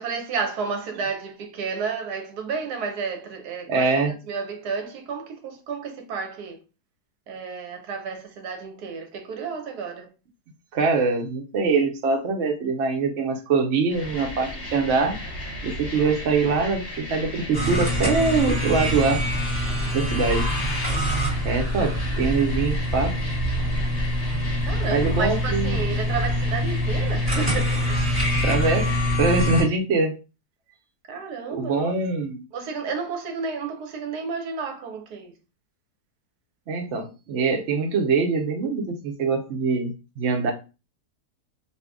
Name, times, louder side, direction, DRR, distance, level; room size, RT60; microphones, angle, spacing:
voice 1, 0.0-6.6 7.3-10.1 16.0-16.1 24.6-28.3 31.1-32.0 32.5-35.3, right 5 dB, 75° right, 1.2 m, -32 dB
voice 2, 3.7-4.1 10.7-15.2 15.6-19.2 19.9-20.5 21.4-23.2 24.9-25.8 28.4-30.2 31.5-32.4 36.7-40.5, right 4 dB, 55° right, 0.9 m, -23 dB
sound 1, 13.9-29.2, left 1 dB, 40° left, 1.1 m, -35 dB
sound 2, 17.5-29.6, equal, 10° right, 1.6 m, -25 dB
2.8 x 2.6 x 3.4 m
omnidirectional pair, 1.7 m